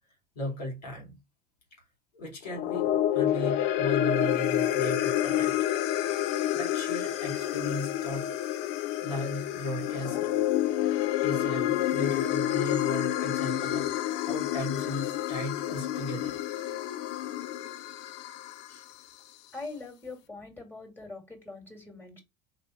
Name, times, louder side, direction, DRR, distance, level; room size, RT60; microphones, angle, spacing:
voice 1, 0.3-1.2 2.1-5.6 6.5-8.3 9.0-10.2 11.2-13.9 14.2-16.4 18.7-18.8, equal, 80° left, 2.5 m, -36 dB
sound 1, 2.4-18.9, left 12 dB, 55° left, 0.6 m, -29 dB
voice 2, 19.5-22.2, left 3 dB, 10° left, 2.1 m, -42 dB
4.0 x 3.0 x 4.1 m
hypercardioid pair, 80°, 20 cm